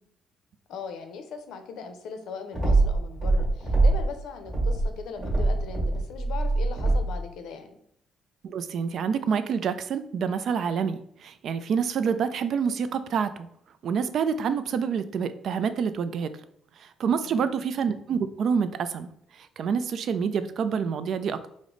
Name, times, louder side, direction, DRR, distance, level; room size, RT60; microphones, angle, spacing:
voice 1, 0.7-7.8 17.2-17.6, left 5 dB, 80° left, 7 dB, 0.6 m, -39 dB
sound 1, 2.5-4.1 4.4-7.2, right 2 dB, 20° right, 1.5 m, -23 dB
voice 2, 8.4-13.5 13.8-16.3 16.8-19.1 19.4-21.4, right 6 dB, 55° right, 12 dB, 0.3 m, -27 dB
4.9 x 2.0 x 3.7 m, 0.69 s
cardioid pair, 145°, 0 cm